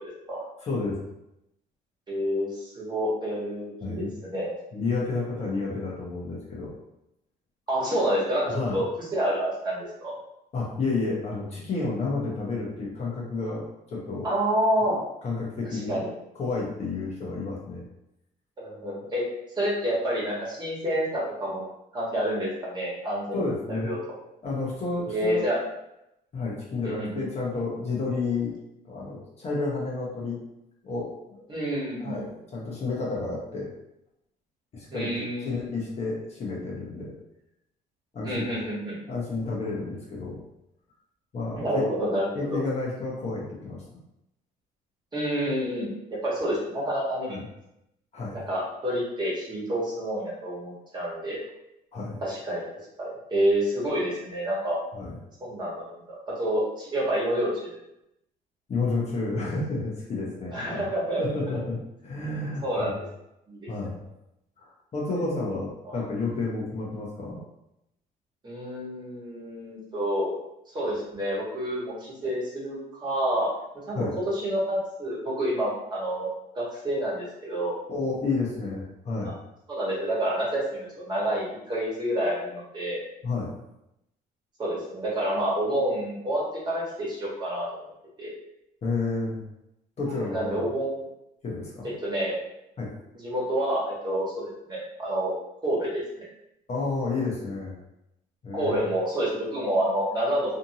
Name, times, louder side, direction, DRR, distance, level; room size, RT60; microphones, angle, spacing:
voice 1, 0.0-0.4 2.1-4.5 7.7-8.9 9.1-10.1 14.2-15.0 15.7-16.1 18.6-19.2 19.6-21.6 21.9-23.4 23.7-24.0 25.1-25.6 26.8-27.2 31.5-32.1 34.9-35.6 38.2-39.0 41.6-42.6 45.1-47.4 48.5-51.4 52.2-52.6 53.0-54.8 55.4-55.9 56.4-57.8 60.5-61.4 62.6-63.0 63.5-63.7 65.8-66.0 68.4-70.3 70.7-73.5 73.9-76.3 76.5-77.8 79.2-79.3 79.7-83.0 84.6-87.7 88.2-88.3 90.2-91.0 92.0-92.4 93.2-95.3 95.6-96.2 98.5-100.6, right 1 dB, 25° right, -6 dB, 1.3 m, -28 dB
voice 2, 0.6-1.0 3.8-4.1 4.7-6.7 8.5-8.8 10.5-14.3 15.2-16.0 16.3-17.8 23.3-23.9 24.4-25.5 26.3-28.6 28.8-30.4 30.8-31.4 32.0-33.7 34.7-35.1 35.4-37.1 38.1-38.6 39.1-40.4 41.3-41.8 42.3-44.0 47.2-47.5 48.1-48.4 51.9-52.2 54.9-55.1 58.7-60.9 61.2-63.0 63.7-64.0 64.6-67.4 73.9-74.2 77.9-79.4 83.2-83.5 88.8-89.4 90.0-90.7 91.4-91.9 92.8-92.9 96.7-97.8 98.4-98.8, left 3 dB, 40° left, -4 dB, 0.8 m, -31 dB
2.7 x 2.5 x 2.7 m, 0.85 s
cardioid pair, 110°, 17 cm